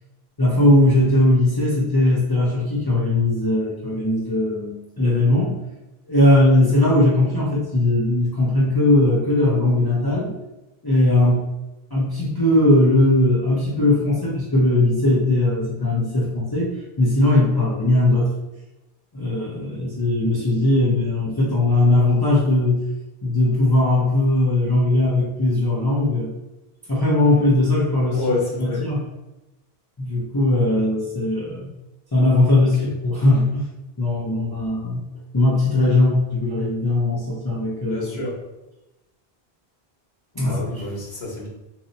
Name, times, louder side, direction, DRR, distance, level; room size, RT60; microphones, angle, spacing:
voice 1, 0.4-5.6 6.1-10.3 10.8-11.5 11.9-18.3 19.1-22.8 23.2-26.3 26.9-28.2 28.6-29.0 30.0-31.7 32.1-33.7 34.0-35.0 35.3-38.2 40.3-40.6, left 1 dB, 25° left, -7 dB, 0.6 m, -19 dB
voice 2, 28.1-28.8 32.8-32.9 37.9-38.4 40.4-41.5, left 2 dB, 75° left, -3 dB, 1.3 m, -28 dB
2.8 x 2.6 x 4.1 m, 1.0 s
omnidirectional pair, 1.1 m